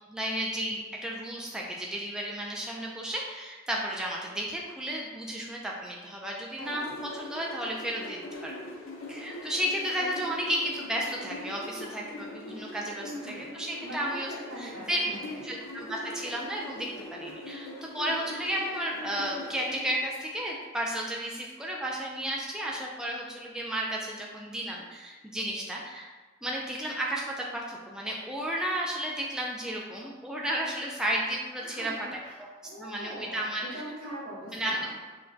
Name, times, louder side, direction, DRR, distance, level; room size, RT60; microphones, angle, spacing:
voice 1, 0.1-8.5 9.1-15.0 15.4-26.1 26.4-31.9 32.4-32.5 32.8-33.8 34.5-34.8, right 1 dB, 5° right, -3 dB, 0.3 m, -33 dB
sound 1, 6.6-20.0, left 1 dB, 70° left, 0.6 m, -42 dB
voice 2, 13.0-13.5 13.8-15.4 31.6-32.4 32.6-33.5 33.7-34.9, right 1 dB, 80° right, -7 dB, 1.3 m, -42 dB
5.7 x 2.2 x 2.6 m, 1.3 s
head